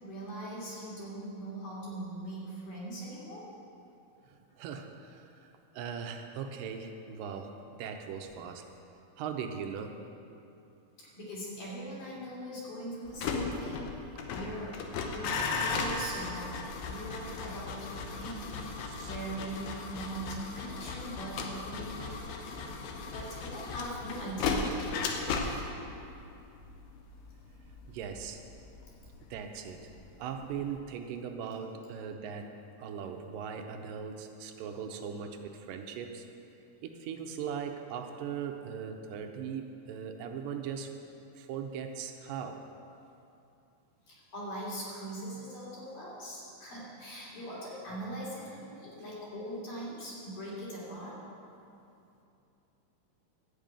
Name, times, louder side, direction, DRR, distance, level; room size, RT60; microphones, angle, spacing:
voice 1, 0.0-3.5 11.0-14.0 14.3-14.7 15.1-16.5 16.9-22.2 22.7-25.4 44.1-51.2, right 1 dB, 70° left, -7 dB, 4.5 m, -41 dB
voice 2, 4.6-5.5 5.7-8.7 9.2-10.0 18.9-19.1 27.9-28.4 29.3-29.8 30.2-32.5 32.8-36.3 36.8-40.9 41.4-42.6, right 7 dB, 85° right, 5 dB, 2.3 m, -39 dB
sound 1, 13.1-30.1 30.3-30.8, left 4 dB, 90° left, 2.6 m, -36 dB
11.5 x 5.3 x 8.8 m, 2.7 s
omnidirectional pair, 4.0 m